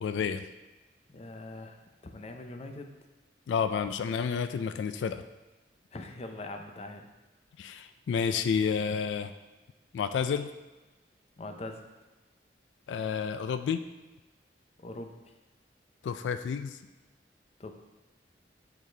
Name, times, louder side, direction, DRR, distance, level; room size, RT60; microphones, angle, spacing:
voice 1, 0.0-0.4 3.5-5.2 7.6-9.3 9.9-10.5 12.9-13.8 16.0-16.8, left 6 dB, 90° left, 10 dB, 0.3 m, -30 dB
voice 2, 1.1-2.9 5.9-7.1 11.4-11.9 14.8-15.3 17.6-17.7, left 2 dB, 35° left, 5 dB, 0.5 m, -42 dB
9.1 x 4.0 x 3.3 m, 1.2 s
head